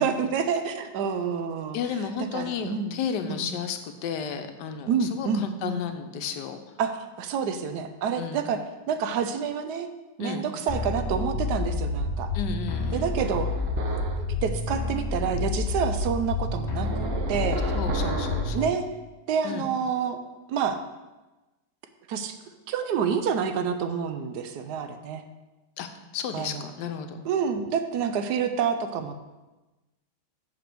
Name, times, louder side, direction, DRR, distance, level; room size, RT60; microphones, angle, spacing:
voice 1, 0.0-1.8 2.3-2.9 3.3-3.5 4.9-5.8 6.8-9.9 10.2-12.3 12.9-13.5 14.2-17.8 18.5-18.9 19.3-20.2 20.5-20.8 22.1-22.4 22.7-25.2 26.3-26.6 27.2-29.2, right 6 dB, 75° right, 8 dB, 1.1 m, -28 dB
voice 2, 1.7-6.6 8.2-8.5 10.2-10.5 12.3-13.1 17.7-18.7 19.4-19.7 25.8-25.9 26.1-27.2, left 7 dB, 80° left, 7 dB, 1.3 m, -33 dB
sound 1, 10.7-18.7, left 2 dB, 45° left, 1.3 m, -29 dB
sound 2, 13.2-14.3 16.8-18.6, right 3 dB, 55° right, 0.7 m, -33 dB
6.0 x 5.1 x 5.9 m, 1.1 s
omnidirectional pair, 1.8 m